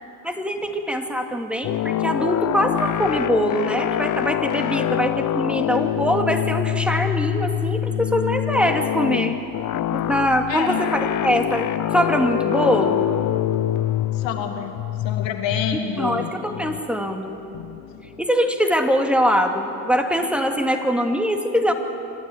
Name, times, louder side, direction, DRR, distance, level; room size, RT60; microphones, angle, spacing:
voice 1, 0.2-9.4 9.9-13.0 16.0-17.4 18.2-21.7, equal, ahead, 4 dB, 2.4 m, -22 dB
sound 1, 1.6-18.2, left 12 dB, 40° left, 0.6 m, -25 dB
voice 2, 10.5-10.8 14.1-16.3, left 7 dB, 70° left, 4 dB, 2.7 m, -28 dB
27.0 x 12.0 x 9.9 m, 2.9 s
supercardioid pair, 75°, 46 cm